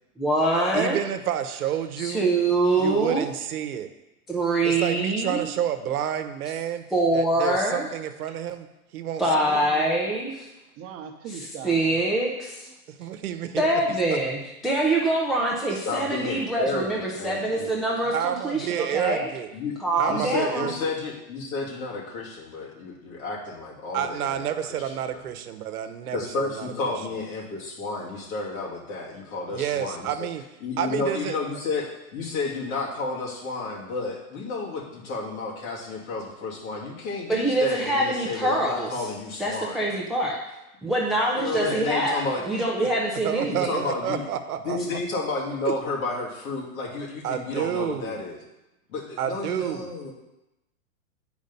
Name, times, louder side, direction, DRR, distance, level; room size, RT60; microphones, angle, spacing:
voice 1, 0.2-1.0 2.0-3.3 4.3-5.4 6.9-7.9 9.2-10.5 11.3-12.7 13.6-14.4 14.6-19.3 19.8-20.7 37.3-38.9 39.4-40.4 40.8-43.7, right 2 dB, ahead, -3 dB, 0.4 m, -24 dB
voice 2, 0.7-2.2 2.8-3.9 4.6-6.8 7.1-8.7 8.9-9.6 12.9-13.8 14.1-14.3 18.1-19.5 20.0-20.9 23.9-26.7 29.5-30.4 30.8-31.4 41.7-41.8 42.6-42.7 43.2-45.0 45.7-45.8 47.2-48.2 49.2-49.9, right 10 dB, 85° right, 9 dB, 0.9 m, -30 dB
voice 3, 9.5-9.9 10.8-11.8, right 8 dB, 30° right, 4 dB, 0.9 m, -38 dB
voice 4, 15.7-17.7 19.5-19.8 20.1-24.4 26.1-30.3 30.6-39.9 41.3-42.4 43.5-44.2 44.6-48.4 48.9-50.1, left 3 dB, 70° left, -3 dB, 2.7 m, -31 dB
8.3 x 5.1 x 5.4 m, 0.94 s
hypercardioid pair, 135°, 43 cm